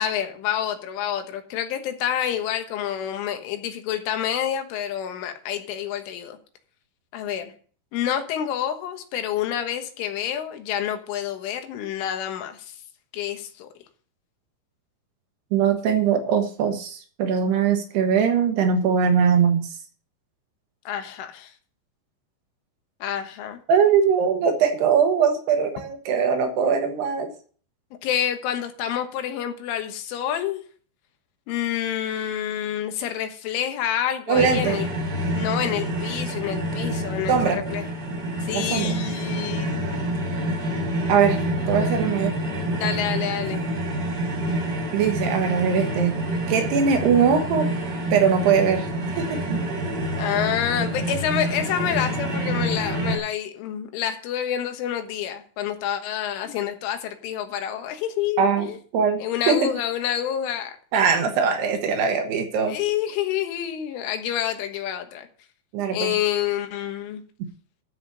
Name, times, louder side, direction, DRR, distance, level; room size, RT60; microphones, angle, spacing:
voice 1, 0.0-6.4 7.1-7.5 7.9-12.6 13.1-13.7 20.9-21.5 23.0-23.6 28.0-30.6 31.5-34.9 35.3-37.8 38.4-39.9 42.7-43.7 50.2-58.8 59.2-60.7 62.7-65.3 65.9-67.2, left 10 dB, 85° left, 6 dB, 3.8 m, -28 dB
voice 2, 15.5-19.7 23.7-27.3 34.3-34.8 37.3-37.7 38.5-39.0 41.1-41.4 41.7-42.4 44.9-46.2 46.5-47.7 48.1-48.9 49.2-49.6 58.4-58.7 58.9-59.2 59.5-59.7 60.9-62.8 65.7-66.2, right 6 dB, 70° right, 5 dB, 3.0 m, -21 dB
sound 1, 34.3-53.2, right 1 dB, 25° right, 3.9 m, -27 dB
13.0 x 6.0 x 6.7 m, 0.44 s
omnidirectional pair, 5.5 m